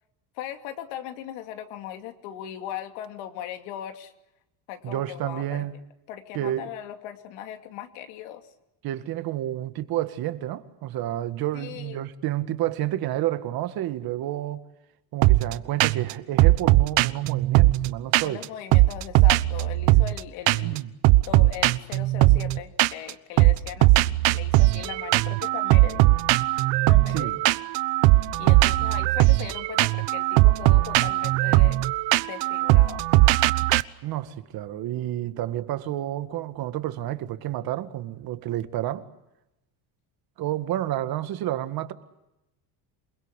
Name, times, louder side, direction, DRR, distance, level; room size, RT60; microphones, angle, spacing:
voice 1, 0.3-4.1 4.7-5.6 6.1-8.5 11.5-12.0 18.2-20.8 21.3-26.0 26.9-27.3 28.2-31.8 32.2-33.0, left 11 dB, 90° left, 2.8 m, -38 dB
voice 2, 4.8-5.7 6.3-6.7 8.8-14.6 15.1-18.4 20.6-20.9 27.1-27.4 34.0-39.1 40.4-41.9, right 13 dB, 55° right, 2.0 m, -30 dB
sound 1, 15.2-15.5 15.8-16.1 16.4-18.4 18.7-20.2 20.5-20.8 21.0-23.1 23.4-33.8, right 19 dB, 75° right, 1.1 m, -19 dB
28.5 x 21.0 x 8.3 m
cardioid pair, 150°, 44 cm